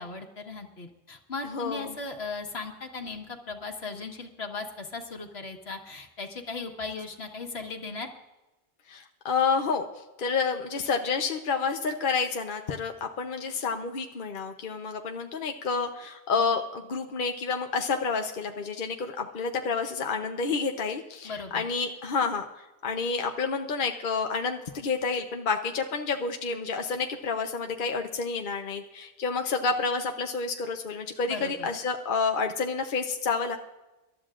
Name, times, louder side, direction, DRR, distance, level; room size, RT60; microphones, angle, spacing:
voice 1, 0.0-8.1 21.2-21.7 31.3-31.7, left 4 dB, 75° left, 3 dB, 1.7 m, -37 dB
voice 2, 1.5-1.9 8.9-9.9 10.2-22.5 22.8-33.6, left 5 dB, 55° left, 4 dB, 0.9 m, -29 dB
26.0 x 13.0 x 2.5 m, 1.1 s
omnidirectional pair, 1.1 m